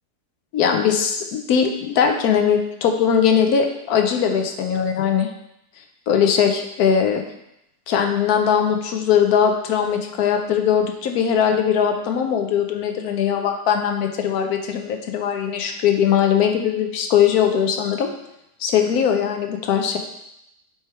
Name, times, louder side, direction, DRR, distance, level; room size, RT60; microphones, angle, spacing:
voice 1, 0.5-5.3 6.1-7.2 7.9-18.1 18.6-20.0, left 8 dB, 70° left, 4 dB, 1.1 m, -20 dB
6.8 x 3.3 x 4.4 m, 0.81 s
omnidirectional pair, 1.7 m